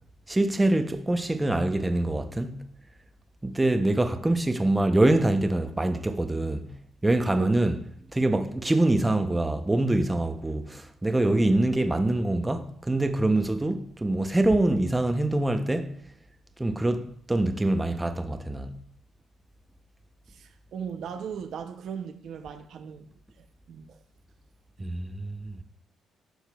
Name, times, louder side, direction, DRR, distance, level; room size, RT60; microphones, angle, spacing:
voice 1, 0.3-2.6 3.4-6.7 7.0-7.8 8.1-15.9 16.6-18.7 24.8-25.5, right 2 dB, 15° right, 0.7 m, -25 dB
voice 2, 20.3-23.1 23.4-24.0, right 7 dB, 70° right, 0.7 m, -38 dB
12.0 x 6.5 x 2.3 m
cardioid pair, 90°, 0 cm